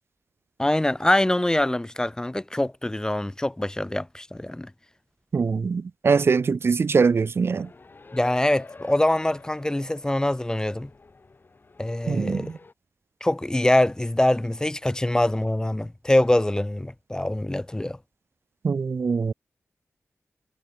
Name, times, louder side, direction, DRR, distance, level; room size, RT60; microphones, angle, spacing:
voice 1, 0.6-4.7 8.1-10.9 11.8-12.5 13.2-18.0, left 1 dB, 15° left, 2.6 m, -24 dB
voice 2, 5.3-7.7 12.1-12.5 18.6-19.3, right 5 dB, 50° right, 0.5 m, -22 dB
sound 1, 7.5-12.7, left 3 dB, 40° left, 6.4 m, -48 dB
wide cardioid pair, 105°, 5 cm